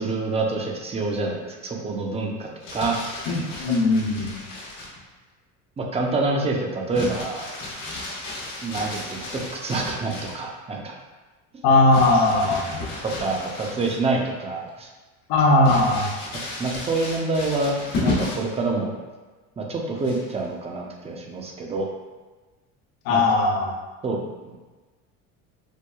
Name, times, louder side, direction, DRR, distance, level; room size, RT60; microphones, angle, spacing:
voice 1, 0.0-3.0 5.8-7.5 8.6-10.9 11.5-11.6 13.0-14.9 16.6-17.8 18.0-19.0 19.6-21.9 23.1-23.2 24.0-24.5, right 3 dB, 15° right, 0 dB, 0.5 m, -27 dB
Crumpling crinkling, 2.4-5.0 6.9-10.5 11.9-14.3 14.7-14.8 15.6-18.6 20.0-20.5, left 2 dB, 90° left, 1.1 m, -33 dB
voice 2, 3.3-4.3 11.6-12.7 15.3-16.1 23.0-23.7, left 2 dB, 65° left, -1 dB, 0.8 m, -19 dB
4.5 x 2.2 x 2.3 m, 1.3 s
supercardioid pair, 85°, 40 cm